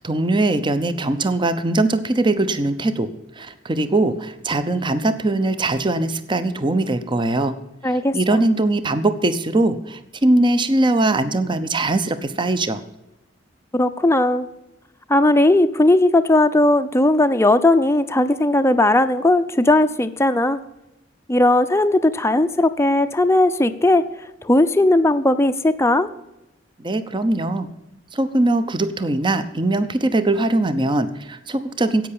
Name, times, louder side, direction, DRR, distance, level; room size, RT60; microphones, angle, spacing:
voice 1, 0.0-3.1 3.4-7.6 8.1-12.8 26.8-27.7 28.1-32.1, right 2 dB, 25° right, 12 dB, 0.8 m, -21 dB
voice 2, 7.8-8.2 13.7-14.5 15.1-20.6 21.3-24.1 24.4-26.1, left 1 dB, 15° left, 9 dB, 0.6 m, -17 dB
10.5 x 8.6 x 8.6 m, 0.93 s
head